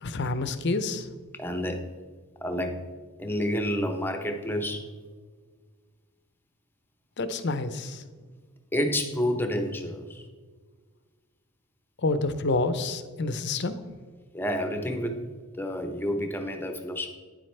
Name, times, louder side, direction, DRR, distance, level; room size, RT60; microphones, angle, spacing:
voice 1, 0.0-1.1 7.2-8.0 12.0-13.8, left 3 dB, 50° left, 11 dB, 0.6 m, -28 dB
voice 2, 1.3-1.8 2.4-2.8 3.2-4.8 8.7-10.2 14.3-15.2 15.6-17.2, equal, 10° left, 5 dB, 0.8 m, -29 dB
9.8 x 7.6 x 3.3 m, 1.5 s
head